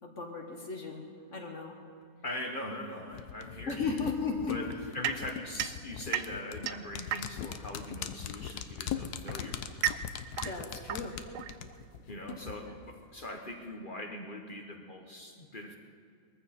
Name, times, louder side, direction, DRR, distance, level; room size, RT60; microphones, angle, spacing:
voice 1, 0.0-1.0 1.3-1.7 3.7-4.9 10.4-11.2 12.6-12.7, left 4 dB, 55° left, 1 dB, 1.6 m, -36 dB
voice 2, 2.2-4.0 4.5-4.7 4.9-9.6 12.1-15.8, left 1 dB, 35° left, 3 dB, 1.1 m, -41 dB
sound 1, 3.1-12.5 12.8-12.9, left 9 dB, 85° left, 1.3 m, -40 dB
sound 2, 5.0-7.6 8.7-12.0, right 11 dB, 65° right, 0.8 m, -36 dB
21.5 x 14.5 x 4.3 m, 2.3 s
omnidirectional pair, 1.6 m